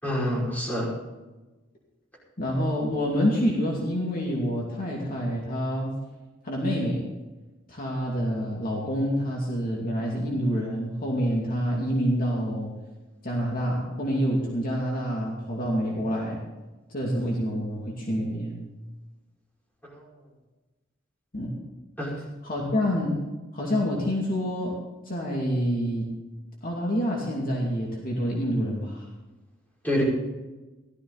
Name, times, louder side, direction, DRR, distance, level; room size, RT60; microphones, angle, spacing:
voice 1, 0.0-0.9 19.8-20.1 22.0-22.3 29.8-30.0, equal, 10° left, -5 dB, 5.5 m, -27 dB
voice 2, 2.4-5.9 6.4-7.1 7.7-12.7 13.2-16.4 16.9-18.6 21.3-21.5 22.4-23.2 23.5-24.8 25.0-26.1 26.6-29.0, equal, 45° left, -2 dB, 2.6 m, -27 dB
16.0 x 13.5 x 4.1 m, 1.1 s
head